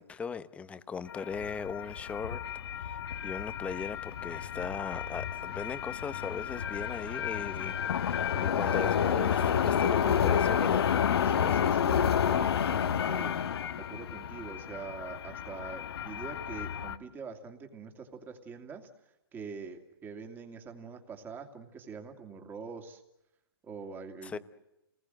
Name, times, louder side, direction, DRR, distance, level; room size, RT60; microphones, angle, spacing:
voice 1, 0.0-2.4 2.7-10.9 24.2-24.4, left 5 dB, 10° left, 13 dB, 0.9 m, -38 dB
sound 1, 1.1-17.0, left 8 dB, 75° left, 1.3 m, -30 dB
voice 2, 11.2-13.3 13.8-18.9 19.3-23.0 23.6-24.4, right 5 dB, 15° right, 5 dB, 2.6 m, -44 dB
28.5 x 20.0 x 7.9 m, 0.94 s
hypercardioid pair, 155°, 13 cm